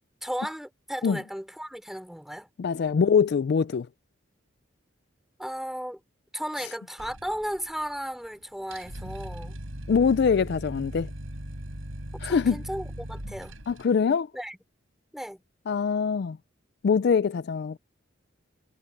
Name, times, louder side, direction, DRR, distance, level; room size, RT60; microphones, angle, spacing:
voice 1, 0.2-2.5 5.4-6.0 6.3-9.6 12.2-13.5 14.3-14.6 15.1-15.4, equal, ahead, 4.7 m, -35 dB
voice 2, 2.6-3.9 6.6-6.7 9.9-11.1 12.2-12.6 13.7-14.3 15.7-16.4 16.8-17.8, left 6 dB, 55° left, 0.3 m, -23 dB
sound 1, 7.0-8.0 8.2-8.3 8.6-13.8, equal, 85° right, 5.3 m, -39 dB
head